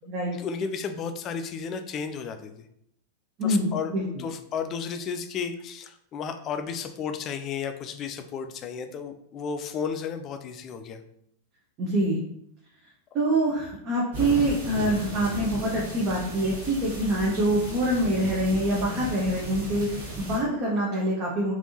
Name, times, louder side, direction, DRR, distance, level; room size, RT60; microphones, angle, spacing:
voice 1, 0.3-2.7 3.4-11.0, left 6 dB, 30° left, 8 dB, 0.3 m, -33 dB
voice 2, 3.4-4.0 11.8-12.2 13.1-21.5, right 1 dB, 35° right, -4 dB, 0.7 m, -25 dB
sound 1, 14.1-20.4, right 1 dB, 55° right, 1.2 m, -36 dB
3.4 x 2.6 x 2.7 m, 0.73 s
figure-of-eight pair, 90°, 0 cm